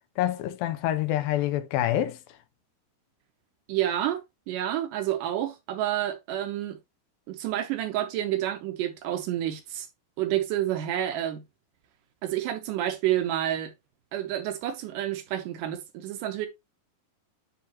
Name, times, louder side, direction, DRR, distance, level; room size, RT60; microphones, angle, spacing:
voice 1, 0.2-2.2, left 12 dB, 85° left, 2.3 m, -26 dB
voice 2, 3.7-4.2 4.5-6.8 7.3-9.9 10.2-11.4 12.2-13.7 14.1-16.5, right 12 dB, 75° right, 2.1 m, -29 dB
9.6 x 3.7 x 2.8 m
omnidirectional pair, 4.2 m